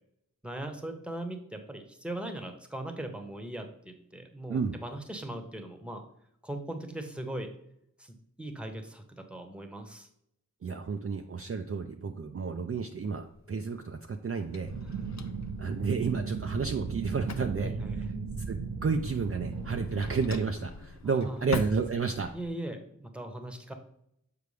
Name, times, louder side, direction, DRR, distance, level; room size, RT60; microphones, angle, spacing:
voice 1, 0.4-6.0 6.4-7.5 8.0-10.1 14.9-15.1 17.6-18.0 21.0-21.4 22.3-23.7, right 1 dB, 5° right, 5 dB, 1.0 m, -39 dB
voice 2, 10.6-14.7 15.6-18.0 18.5-22.3, right 5 dB, 45° right, 5 dB, 0.4 m, -31 dB
Drawer open or close, 13.1-22.5, left 4 dB, 55° left, 0.6 m, -45 dB
sound 1, 14.6-20.3, right 4 dB, 80° right, 0.7 m, -36 dB
6.8 x 4.6 x 3.3 m, 0.76 s
wide cardioid pair, 55°, 33 cm